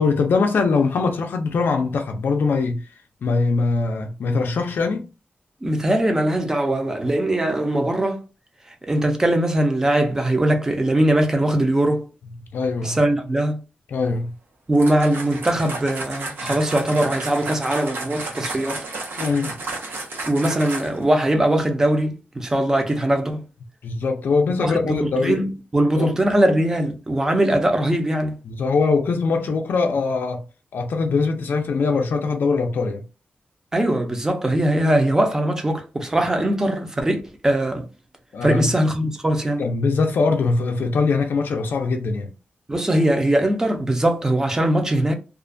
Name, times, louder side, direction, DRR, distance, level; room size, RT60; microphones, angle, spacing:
voice 1, 0.0-2.9 3.2-5.1 12.5-13.0 13.9-14.3 16.4-16.5 19.2-19.5 23.8-25.4 26.0-26.1 28.4-30.4 30.7-33.0 38.3-38.7 39.6-42.3, left 4 dB, 75° left, 0.4 m, -22 dB
voice 2, 5.6-8.2 8.8-12.1 12.8-13.6 14.7-18.9 20.3-23.4 24.6-28.3 33.7-37.9 38.4-39.6 42.7-45.1, right 1 dB, 15° right, 0.4 m, -21 dB
sound 1, 14.7-21.1, right 3 dB, 80° right, 0.7 m, -32 dB
2.4 x 2.1 x 2.5 m
wide cardioid pair, 170°, 4 cm